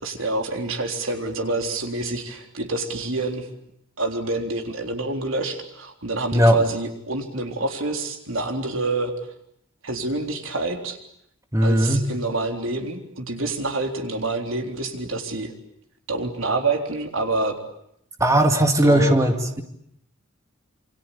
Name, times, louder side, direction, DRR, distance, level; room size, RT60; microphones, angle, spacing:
voice 1, 0.0-3.5 4.0-9.1 9.8-11.0 11.6-15.5 16.1-17.6 18.8-19.2, right 2 dB, 75° right, 4 dB, 3.8 m, -27 dB
voice 2, 11.5-12.0 18.2-19.6, equal, 15° right, 5 dB, 2.3 m, -18 dB
27.5 x 24.5 x 8.5 m, 0.74 s
head